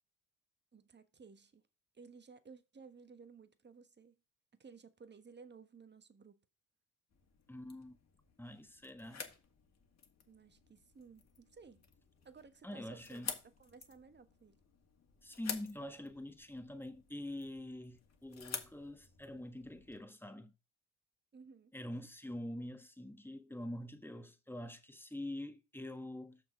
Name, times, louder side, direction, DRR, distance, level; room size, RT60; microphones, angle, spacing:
voice 1, 0.7-1.6 1.9-4.2 4.6-6.4 10.3-11.9 12.2-14.6 21.3-21.7, right 5 dB, 25° right, 1.3 m, -57 dB
sound 1, 7.1-20.0, left 6 dB, 40° left, 2.0 m, -50 dB
voice 2, 7.5-8.0 8.4-9.3 12.6-13.3 15.2-20.5 21.7-26.4, left 1 dB, 5° left, 1.6 m, -45 dB
6.5 x 6.1 x 5.0 m
supercardioid pair, 65°, 39 cm